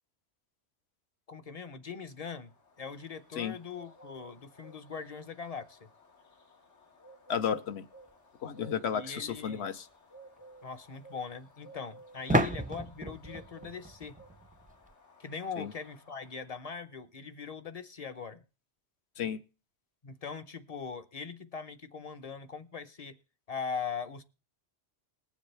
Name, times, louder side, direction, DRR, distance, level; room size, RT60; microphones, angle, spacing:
voice 1, 1.3-2.5 2.8-5.9 8.9-9.7 10.6-14.1 15.2-18.4 20.0-23.2 23.5-24.2, left 5 dB, 40° left, 0.8 m, -41 dB
Bird, 2.1-16.8, right 1 dB, 85° left, 2.2 m, -57 dB
voice 2, 7.3-7.8 8.4-9.8 12.3-12.4 15.6-15.7 19.2-19.4, left 8 dB, 70° left, 1.1 m, -33 dB
sound 1, 9.3-9.4 12.3-14.9, right 1 dB, 10° right, 0.4 m, -32 dB
20.5 x 7.2 x 3.3 m
omnidirectional pair, 1.2 m